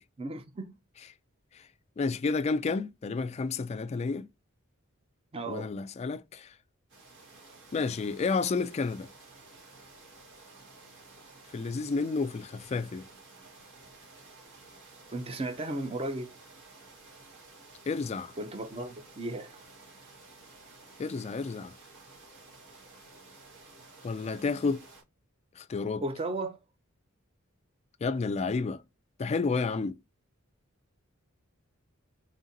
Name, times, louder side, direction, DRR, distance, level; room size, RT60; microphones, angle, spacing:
voice 1, 0.2-0.7 5.3-5.7 15.1-16.3 18.4-19.6 26.0-26.6, right 2 dB, 25° right, 0.5 m, -35 dB
voice 2, 2.0-4.3 5.5-6.5 7.7-9.1 11.5-13.1 17.9-18.3 21.0-21.7 24.0-24.9 25.6-26.0 28.0-28.8 29.2-30.0, left 4 dB, 30° left, 0.3 m, -30 dB
sound 1, 6.9-25.0, right 3 dB, 60° right, 1.9 m, -53 dB
3.8 x 3.5 x 2.7 m
head